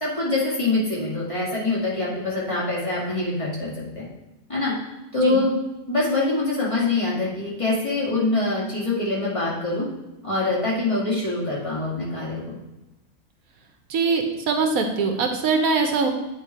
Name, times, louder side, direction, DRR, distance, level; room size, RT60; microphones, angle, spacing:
voice 1, 0.0-3.7 4.0-4.1 4.5-4.7 5.1-5.6 5.9-9.8 10.2-12.6, left 2 dB, 20° left, -7 dB, 2.1 m, -24 dB
voice 2, 13.9-16.1, right 4 dB, 75° right, 4 dB, 1.2 m, -22 dB
8.9 x 3.2 x 4.5 m, 0.97 s
omnidirectional pair, 1.5 m